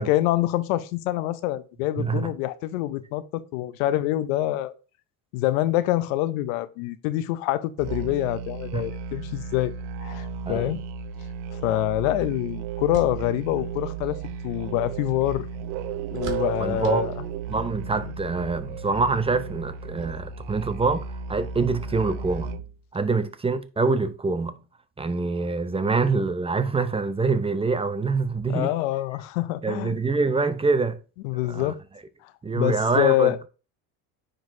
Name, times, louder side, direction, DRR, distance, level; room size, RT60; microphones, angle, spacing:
voice 1, 0.0-4.7 5.3-9.7 10.0-10.8 11.6-14.2 14.4-15.5 16.1-17.2 28.5-30.0 31.2-31.8 32.2-33.4, left 15 dB, 90° left, 0.6 m, -26 dB
voice 2, 2.0-2.3 8.7-8.8 10.5-10.7 16.6-17.1 17.5-22.5 22.9-24.6 25.0-28.7 29.6-31.0 31.5-31.7 32.4-33.3, right 4 dB, 15° right, 0.6 m, -25 dB
Musical instrument, 7.8-22.8, right 6 dB, 75° right, 0.7 m, -34 dB
sound 1, 11.8-17.9, right 6 dB, 50° right, 2.1 m, -47 dB
9.5 x 3.9 x 2.6 m
supercardioid pair, 90°, 39 cm